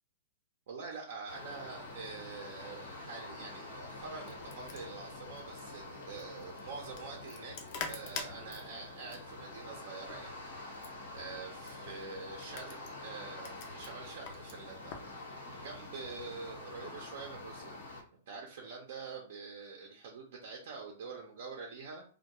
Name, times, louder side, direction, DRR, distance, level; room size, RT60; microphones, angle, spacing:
voice 1, 0.7-15.0 15.5-17.8 18.3-22.0, right 4 dB, 65° right, 1 dB, 0.5 m, -46 dB
sound 1, 1.3-18.0, left 2 dB, 80° left, 1.0 m, -47 dB
sound 2, 4.0-15.1, left 5 dB, 50° left, 0.5 m, -48 dB
2.2 x 2.2 x 2.9 m, 0.41 s
hypercardioid pair, 140°, 0 cm